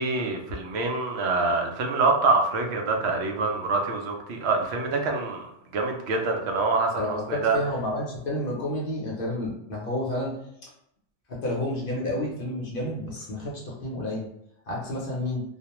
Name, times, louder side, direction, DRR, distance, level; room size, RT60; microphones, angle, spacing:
voice 1, 0.0-7.6, right 3 dB, 70° right, 2 dB, 0.8 m, -25 dB
voice 2, 7.0-10.4 11.3-14.3 14.7-15.4, left 1 dB, 55° left, -3 dB, 0.8 m, -30 dB
2.3 x 2.1 x 2.9 m, 0.75 s
omnidirectional pair, 1.2 m